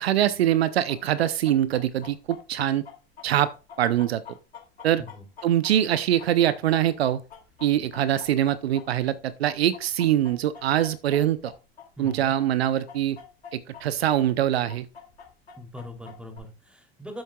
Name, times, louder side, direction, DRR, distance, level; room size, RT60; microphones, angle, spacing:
voice 1, 0.0-2.8 3.2-3.5 3.8-4.2 4.8-5.0 5.4-7.2 7.6-11.5 12.0-13.2 13.5-14.9, right 11 dB, 75° right, 0.7 m, -23 dB
Chicken rooster, 0.9-9.2 9.5-13.8 14.1-14.2 14.7-16.4, left 7 dB, 80° left, 2.5 m, -45 dB
voice 2, 12.0-12.3 15.6-17.2, left 1 dB, 5° right, 2.9 m, -41 dB
10.5 x 7.9 x 2.3 m
hypercardioid pair, 80°, 31 cm